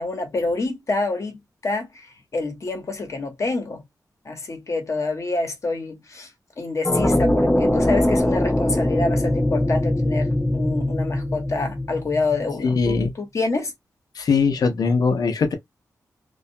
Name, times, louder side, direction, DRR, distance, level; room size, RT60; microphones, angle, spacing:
voice 1, 0.0-2.1 2.3-3.8 4.2-6.3 6.6-13.7, left 3 dB, 50° left, 0.9 m, -27 dB
sound 1, 6.9-12.7, left 1 dB, 15° left, 0.4 m, -22 dB
voice 2, 12.6-13.1 14.2-15.5, left 4 dB, 80° left, 0.6 m, -20 dB
2.3 x 2.2 x 2.6 m
wide cardioid pair, 100°, 6 cm